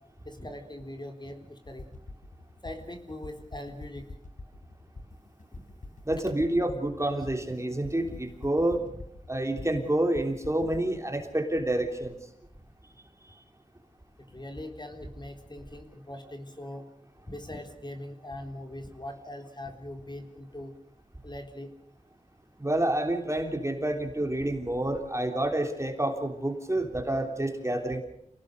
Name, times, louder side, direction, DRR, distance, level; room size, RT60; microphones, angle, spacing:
voice 1, 0.2-2.0 2.6-4.1 5.5-5.9 8.1-8.2 10.6-10.7 11.1-11.2 14.3-16.9 17.3-20.7 21.2-21.7, left 1 dB, 35° left, 4 dB, 3.9 m, -41 dB
sound 1, 1.7-10.9, left 2 dB, 70° left, 3.5 m, -45 dB
voice 2, 6.0-8.8 9.3-12.2 22.6-28.0, right 1 dB, 20° right, 4 dB, 3.4 m, -28 dB
28.5 x 18.5 x 6.7 m, 0.75 s
wide cardioid pair, 75°, 14 cm